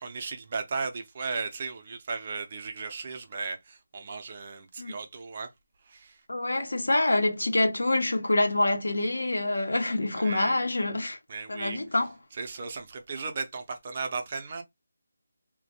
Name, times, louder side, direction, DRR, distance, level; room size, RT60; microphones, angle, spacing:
voice 1, 0.0-5.5 5.9-6.2 10.1-10.7 11.3-11.8 12.4-14.6, right 4 dB, 35° right, 0.5 m, -36 dB
voice 2, 6.3-11.2 11.5-12.1, left 2 dB, 85° left, 0.8 m, -26 dB
2.2 x 2.1 x 2.8 m
figure-of-eight pair, 165°, 0 cm